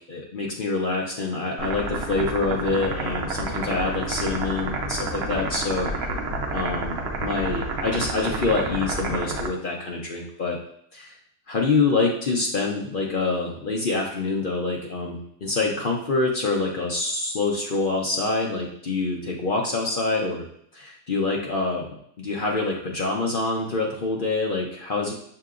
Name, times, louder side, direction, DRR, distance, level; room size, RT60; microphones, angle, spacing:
voice 1, 0.0-6.1 6.5-10.6 10.9-11.1 11.5-20.4 20.7-21.8 22.2-25.1, left 3 dB, 60° left, -1 dB, 0.5 m, -26 dB
sound 1, 1.6-9.5, right 2 dB, 60° right, 0.7 m, -29 dB
6.6 x 2.8 x 2.4 m, 0.68 s
omnidirectional pair, 1.7 m